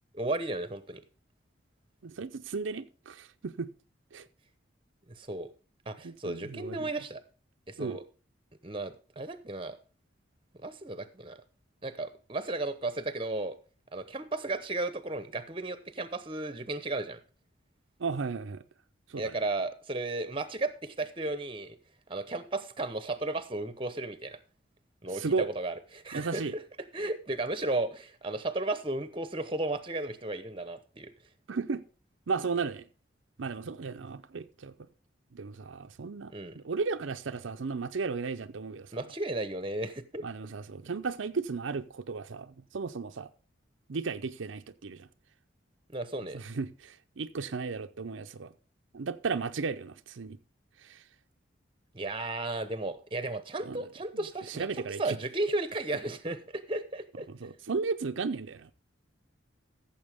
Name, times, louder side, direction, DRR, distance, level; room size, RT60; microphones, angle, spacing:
voice 1, 0.2-1.0 5.2-5.5 5.9-7.2 7.7-8.0 8.6-9.8 10.6-11.4 11.8-13.6 13.9-17.2 19.2-21.8 22.1-24.4 25.0-26.4 26.9-31.1 36.3-36.6 38.9-40.2 45.9-46.4 51.9-54.6 55.0-57.3, right 2 dB, 25° right, 0.9 m, -34 dB
voice 2, 2.0-3.7 4.1-4.3 6.0-6.9 7.8-8.0 18.0-18.6 19.1-19.4 25.0-25.5 26.1-26.5 31.5-31.8 32.3-32.9 33.4-34.7 35.3-39.0 40.2-43.3 43.9-45.1 46.3-48.5 48.9-50.4 50.8-51.0 53.6-53.9 54.1-54.2 54.5-55.2 57.3-58.7, right 4 dB, 80° right, 0.6 m, -35 dB
14.0 x 7.2 x 3.5 m
head